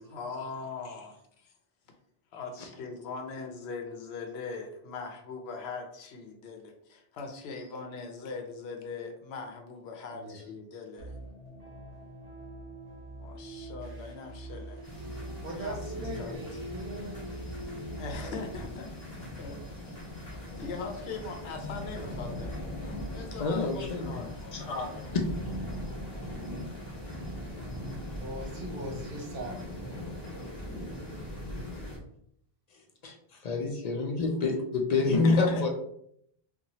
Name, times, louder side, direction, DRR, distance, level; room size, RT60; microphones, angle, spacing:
voice 1, 0.0-1.5 2.3-11.2 13.2-14.8 15.5-16.4 18.0-19.9 20.2-25.1 35.2-35.7, left 4 dB, 85° left, 4 dB, 0.8 m, -41 dB
voice 2, 10.1-10.5 15.4-17.2 28.0-29.8, right 1 dB, 65° right, -1 dB, 0.8 m, -40 dB
sound 1, 11.0-18.6, right 1 dB, 35° right, 1.1 m, -42 dB
sound 2, 14.8-32.0, left 1 dB, 20° left, 0.9 m, -40 dB
voice 3, 23.4-25.2 33.0-35.7, left 3 dB, 55° left, 1 dB, 0.5 m, -28 dB
2.9 x 2.3 x 2.7 m, 0.70 s
omnidirectional pair, 1.0 m